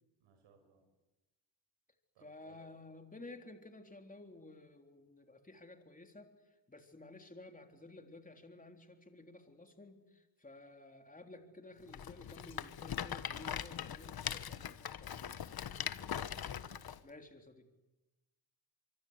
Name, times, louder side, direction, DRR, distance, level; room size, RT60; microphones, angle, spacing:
voice 1, 0.2-0.9 2.1-2.7 15.6-17.1, right 5 dB, 90° right, 4 dB, 5.7 m, -65 dB
voice 2, 2.2-6.3 6.7-15.3 17.0-17.7, left 2 dB, 15° left, 4 dB, 3.8 m, -54 dB
Rattle, 11.9-17.0, left 9 dB, 50° left, 1.3 m, -41 dB
25.0 x 24.0 x 8.3 m, 1.0 s
cardioid pair, 75°, 45 cm